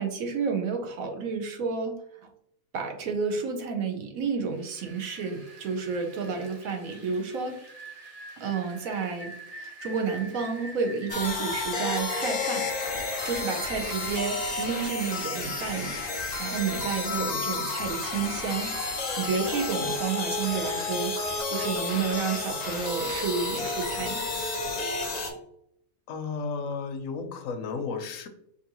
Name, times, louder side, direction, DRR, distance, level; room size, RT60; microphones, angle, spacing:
voice 1, 0.0-1.9 2.7-7.6 8.4-12.7 13.2-16.1 16.4-18.7 19.2-21.2 21.5-24.2, right 5 dB, 75° right, 4 dB, 1.1 m, -31 dB
Rain, 4.5-24.0, right 2 dB, 35° right, 0.7 m, -46 dB
sound 1, 11.1-25.3, left 3 dB, 40° left, 0.6 m, -31 dB
voice 2, 26.1-28.3, left 4 dB, 70° left, 8 dB, 0.9 m, -33 dB
4.6 x 2.7 x 2.9 m, 0.72 s
omnidirectional pair, 1.5 m